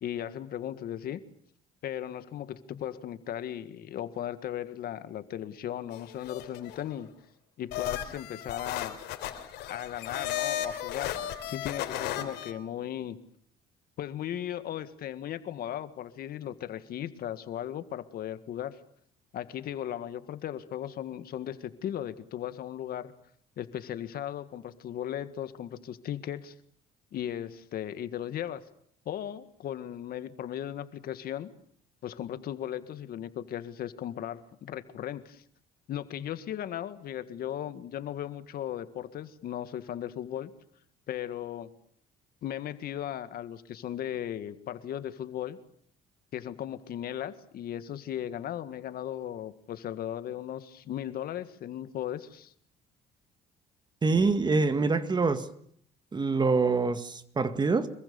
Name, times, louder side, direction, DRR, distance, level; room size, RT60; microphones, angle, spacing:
voice 1, 0.0-1.2 1.8-7.1 7.6-9.0 9.7-11.2 11.5-13.2 14.0-18.8 19.3-23.1 23.6-26.5 27.1-28.6 29.1-31.5 32.0-35.4 35.9-40.5 41.1-41.7 42.4-45.6 46.3-52.5, left 11 dB, 65° left, 11 dB, 1.9 m, -37 dB
sound 1, 5.9-6.9 7.7-12.5, left 11 dB, 85° left, 3.6 m, -35 dB
voice 2, 54.0-55.5 56.1-57.9, right 4 dB, 25° right, 11 dB, 1.9 m, -25 dB
25.5 x 22.5 x 7.1 m, 0.65 s
cardioid pair, 110°, 17 cm